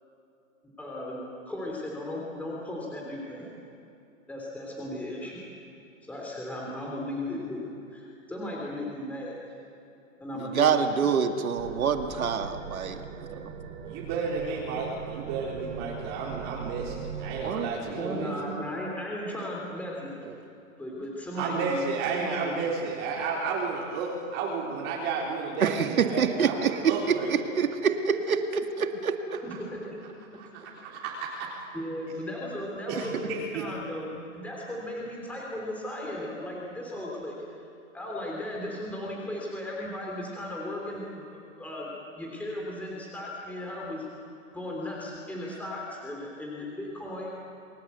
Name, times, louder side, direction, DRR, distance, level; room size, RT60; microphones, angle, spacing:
voice 1, 0.8-3.5 4.3-5.4 6.0-7.6 7.9-9.3 10.2-11.1 15.8-15.9 18.0-20.1 20.8-21.8 22.1-22.5 29.4-29.8 30.3-30.4 31.7-37.3 37.9-44.0 44.5-47.3, left 1 dB, 5° left, -3 dB, 3.2 m, -36 dB
voice 2, 10.4-13.0 13.3-13.5 17.4-18.7 25.6-29.1, right 6 dB, 85° right, 6 dB, 2.2 m, -26 dB
sound 1, 11.6-17.7, right 7 dB, 60° right, 3.2 m, -40 dB
voice 3, 13.8-18.3 21.3-27.4 29.3-29.6 30.4-31.3 32.9-33.6, right 5 dB, 30° right, -3 dB, 3.9 m, -32 dB
29.0 x 20.0 x 8.2 m, 2.7 s
hypercardioid pair, 155°, 41 cm